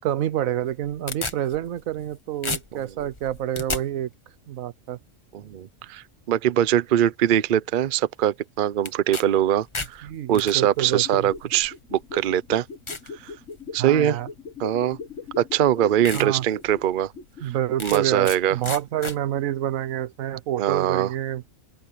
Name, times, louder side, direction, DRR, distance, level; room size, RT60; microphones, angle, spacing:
voice 1, 0.0-4.1 4.5-5.0 10.0-11.3 13.8-14.3 16.1-16.4 17.4-21.4, right 12 dB, 85° right, 1.1 m, -28 dB
sound 1, 0.6-2.1 2.4-3.8 8.8-9.2 9.6-10.5 11.4-11.5 12.1-12.2 12.9-13.1 13.6-14.0 15.1-15.2 15.6-15.7 16.0-16.3 16.7-16.8 17.8-18.4 18.6-19.2, left 3 dB, 25° left, 1.3 m, -32 dB
voice 2, 5.3-12.7 13.2-13.3 13.7-14.2 14.6-15.0 15.4-17.1 17.4-17.5 17.8-18.6 20.6-21.1, right 11 dB, 50° right, 0.7 m, -22 dB
sound 2, 10.7-17.6 17.9-18.0, left 4 dB, 65° left, 2.1 m, -39 dB
open air
omnidirectional pair, 1.4 m